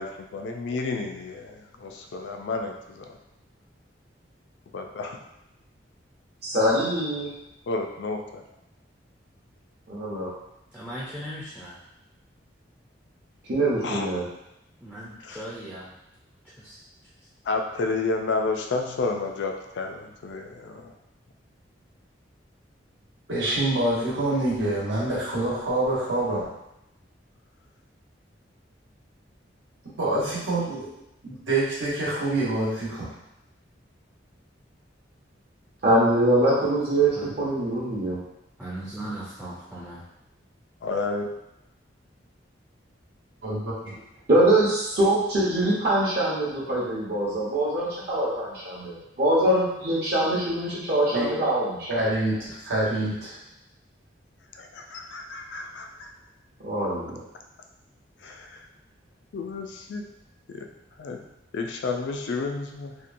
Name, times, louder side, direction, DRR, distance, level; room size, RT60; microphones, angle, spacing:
voice 1, 0.0-3.2 4.7-5.2 7.7-8.4 13.8-14.1 15.2-15.4 17.5-20.9 40.8-41.3 54.5-56.1 58.2-58.7 59.3-60.0 60.5-60.7 61.0-61.2 61.5-62.9, left 3 dB, 70° left, 4 dB, 0.3 m, -31 dB
voice 2, 6.4-7.3 9.9-10.3 13.5-14.3 35.8-38.2 44.3-51.9 56.6-57.2, right 1 dB, 55° right, -7 dB, 0.7 m, -23 dB
voice 3, 10.7-11.8 14.8-15.9 16.6-16.8 37.2-37.3 38.6-40.0, right 1 dB, 5° right, -9 dB, 0.4 m, -38 dB
voice 4, 23.3-26.5 30.0-30.9 31.2-33.1 43.4-44.0 51.1-51.3 51.9-53.4, right 2 dB, 85° right, -7 dB, 1.0 m, -26 dB
2.8 x 2.2 x 2.5 m, 0.88 s
head